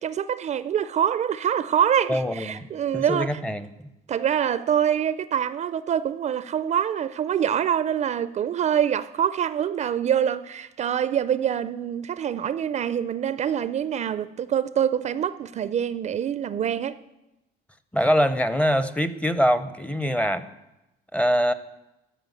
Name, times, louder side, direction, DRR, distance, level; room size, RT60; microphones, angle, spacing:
voice 1, 0.0-3.4 4.1-17.0, right 9 dB, 45° right, 0.4 m, -25 dB
voice 2, 2.1-2.7 2.9-3.7 17.9-20.5 21.1-21.5, equal, 5° left, 0.6 m, -23 dB
13.5 x 5.0 x 7.7 m
cardioid pair, 110°, 17 cm